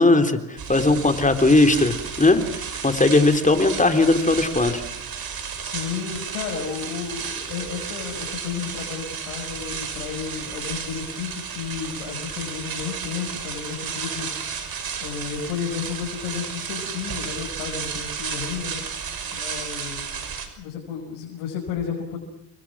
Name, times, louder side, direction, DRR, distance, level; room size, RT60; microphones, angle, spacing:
voice 1, 0.0-2.4 2.8-4.8, left 2 dB, 15° left, 7 dB, 3.5 m, -18 dB
sound 1, 0.6-20.5, right 6 dB, 45° right, 5.8 m, -33 dB
voice 2, 5.6-14.3 15.0-18.8 19.3-20.2 20.6-22.2, left 7 dB, 80° left, -1 dB, 6.2 m, -32 dB
30.0 x 23.5 x 6.3 m, 0.77 s
supercardioid pair, 80°, 50 cm